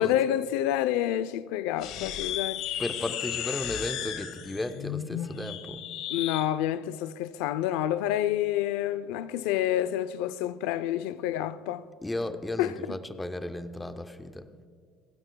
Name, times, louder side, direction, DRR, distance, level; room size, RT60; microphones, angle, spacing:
voice 1, 0.0-2.6 6.1-11.8 12.6-12.9, left 12 dB, 85° left, 0.5 m, -28 dB
sound 1, 1.8-6.5, left 10 dB, 55° left, 1.0 m, -34 dB
voice 2, 2.8-5.8 12.0-14.5, left 1 dB, 5° left, 0.5 m, -34 dB
27.5 x 15.5 x 2.3 m
cardioid pair, 180°, 0 cm